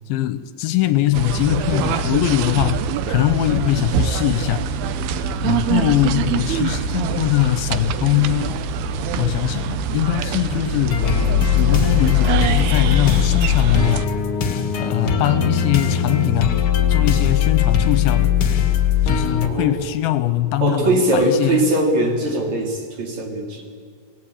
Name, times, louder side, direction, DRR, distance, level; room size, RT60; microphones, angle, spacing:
voice 1, 0.1-4.7 5.4-8.7 9.2-11.1 11.5-14.1 14.8-16.6 16.9-18.3 19.0-21.7, left 14 dB, 80° left, 12 dB, 2.5 m, -21 dB
sound 1, 1.1-14.1, right 6 dB, 80° right, 2.8 m, -24 dB
sound 2, 10.9-19.5, left 9 dB, 50° left, 1.8 m, -19 dB
voice 2, 19.4-19.8 20.6-23.6, right 2 dB, 45° right, 1 dB, 3.8 m, -20 dB
27.0 x 18.5 x 8.7 m, 2.2 s
omnidirectional pair, 4.6 m